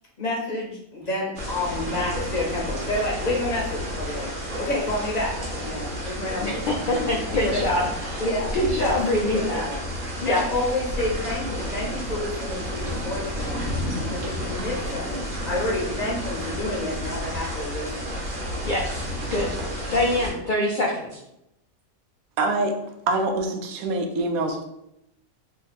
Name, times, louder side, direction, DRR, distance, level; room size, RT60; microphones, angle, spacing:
voice 1, 0.2-4.3 4.6-7.1 7.4-7.6 8.2-8.5 8.8-8.9 9.3-9.8 10.3-13.6 14.0-15.1 15.4-18.1, left 1 dB, 40° left, -3 dB, 0.7 m, -29 dB
sound 1, 1.3-20.3, equal, 45° right, 0.9 m, -31 dB
voice 2, 6.4-8.3 8.5-9.7 10.2-10.5 18.2-18.3 18.6-19.6 19.9-21.2, left 1 dB, 85° left, -1 dB, 0.4 m, -25 dB
voice 3, 22.4-22.8 23.1-24.6, right 2 dB, 85° right, 4 dB, 1.0 m, -24 dB
2.8 x 2.4 x 4.1 m, 0.83 s
omnidirectional pair, 1.5 m